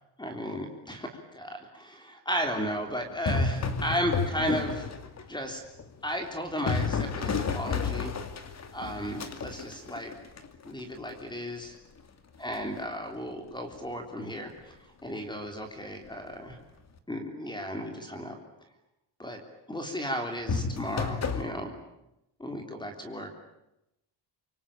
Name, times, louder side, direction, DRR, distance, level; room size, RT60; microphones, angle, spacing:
voice 1, 0.2-4.9 5.3-5.6 6.0-8.1 8.7-10.1 10.6-11.8 12.4-14.8 15.0-16.6 17.1-18.4 19.2-19.4 19.7-21.7 22.4-23.4, equal, 10° left, 5 dB, 3.4 m, -34 dB
sound 1, 3.1-5.3 5.8-10.8 12.5-12.8 20.5-21.4, left 4 dB, 35° left, 2.6 m, -31 dB
27.5 x 24.5 x 8.8 m, 0.87 s
cardioid pair, 155°, 44 cm